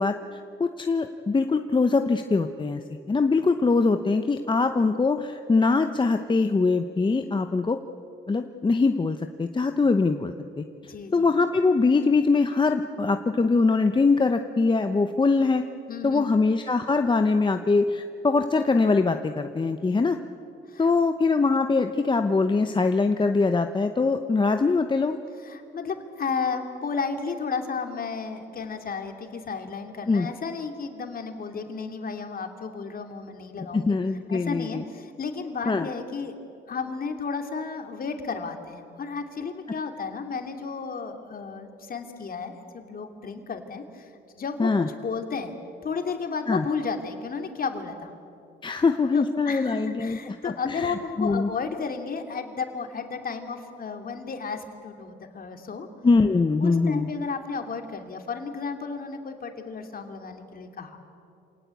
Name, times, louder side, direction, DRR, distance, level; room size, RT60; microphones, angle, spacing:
voice 1, 0.0-2.8 3.1-7.8 8.3-10.6 11.1-15.6 16.0-20.2 20.8-25.2 30.1-30.3 33.7-34.8 35.7-35.9 44.6-44.9 46.5-46.6 48.6-50.9 51.2-51.5 56.0-57.1, left 4 dB, 25° left, 7 dB, 0.9 m, -23 dB
voice 2, 10.8-11.3 15.9-16.3 20.7-20.9 25.4-34.0 34.3-44.1 44.4-45.5 45.8-48.1 49.1-55.9 56.6-61.0, left 5 dB, 45° left, 5 dB, 2.8 m, -33 dB
26.5 x 18.5 x 8.4 m, 2.6 s
cardioid pair, 90°, 20 cm